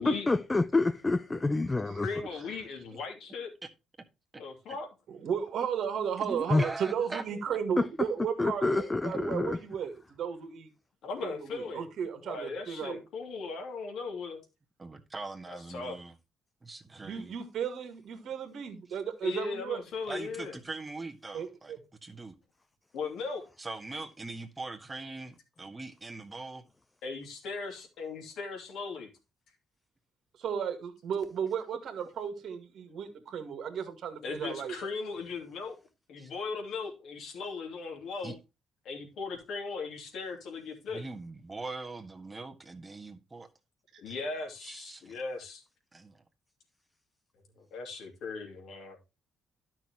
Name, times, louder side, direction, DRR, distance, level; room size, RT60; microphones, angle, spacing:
voice 1, 0.0-2.1 6.5-6.6 7.8-7.9 8.4-9.6, left 3 dB, 25° left, 0.6 m, -27 dB
voice 2, 2.0-3.5 4.4-4.9 11.0-11.9 12.2-14.4 15.5-16.0 19.2-20.6 22.9-23.5 27.0-29.1 34.2-35.7 36.1-38.4 38.8-41.0 44.0-45.6 47.6-49.0, left 4 dB, 65° left, 2.7 m, -38 dB
voice 3, 5.1-10.7 11.2-13.0 17.0-19.8 21.3-21.8 30.4-34.7, right 7 dB, 60° right, 1.9 m, -34 dB
voice 4, 6.2-7.6 14.8-16.1 16.6-17.3 20.1-21.7 22.0-22.3 23.6-26.6 36.2-36.3 38.2-38.3 40.9-43.5 44.1-44.2 44.6-45.1 45.9-46.2, right 3 dB, 25° right, 1.6 m, -42 dB
12.5 x 6.1 x 3.0 m
hypercardioid pair, 45°, 0 cm